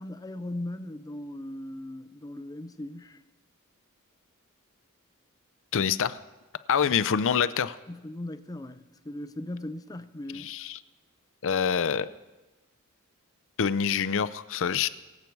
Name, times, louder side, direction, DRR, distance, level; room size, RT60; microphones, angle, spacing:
voice 1, 0.0-3.2 7.9-10.5, left 1 dB, 15° left, 0.6 m, -38 dB
voice 2, 5.7-6.2 6.7-7.8 10.3-10.8 11.4-12.1 13.6-14.9, left 7 dB, 60° left, 0.5 m, -26 dB
23.0 x 8.2 x 4.6 m
head